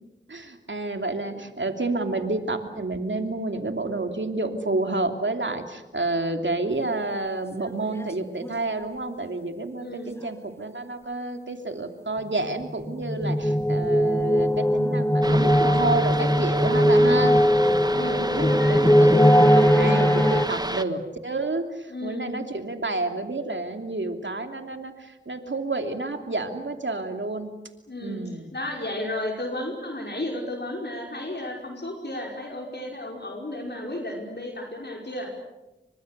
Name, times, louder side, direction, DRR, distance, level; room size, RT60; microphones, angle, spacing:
voice 1, 0.3-27.5 28.0-28.5, right 2 dB, 70° right, 6 dB, 2.9 m, -30 dB
sound 1, 7.7-7.8 8.0-8.1 8.4-8.5 12.7-20.5, equal, 15° left, 1.0 m, -20 dB
voice 2, 9.8-10.2 17.0-17.3 17.9-18.8 21.9-22.4 27.9-35.3, left 1 dB, 60° left, 1 dB, 5.2 m, -33 dB
sound 2, 15.2-20.8, right 1 dB, 20° right, 1.4 m, -30 dB
29.5 x 25.0 x 6.7 m, 1.0 s
wide cardioid pair, 50°, 20 cm